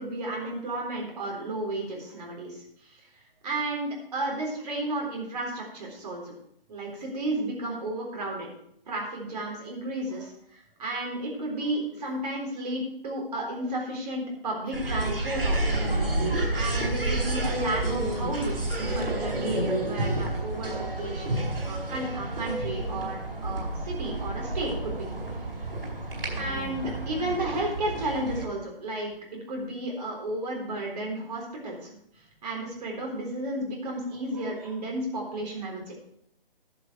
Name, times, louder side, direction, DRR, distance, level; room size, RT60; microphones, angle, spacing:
voice 1, 0.0-3.1 3.4-6.3 6.7-8.5 8.9-15.8 16.5-25.1 26.3-31.9 32.4-35.9, right 1 dB, 45° right, -1 dB, 3.8 m, -33 dB
sound 1, 14.7-28.5, right 2 dB, 75° right, 4.6 m, -30 dB
voice 2, 19.4-19.9 21.4-21.6 24.1-24.2 25.6-26.8 34.3-34.8, right 2 dB, 10° right, 0 dB, 1.3 m, -47 dB
10.5 x 6.9 x 4.9 m, 0.71 s
figure-of-eight pair, 145°, 29 cm